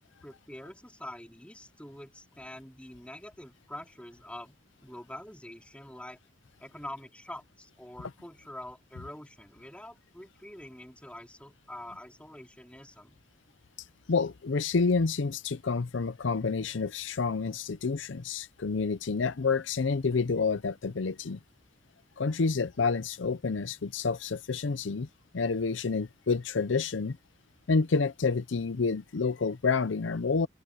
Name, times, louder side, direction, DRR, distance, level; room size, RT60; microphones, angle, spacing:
voice 1, 0.2-4.6 4.8-6.2 6.6-13.2, left 1 dB, 5° left, 3.9 m, -45 dB
voice 2, 14.1-21.4 22.2-25.1 25.3-27.2 27.7-30.5, left 4 dB, 75° left, 0.6 m, -29 dB
open air
head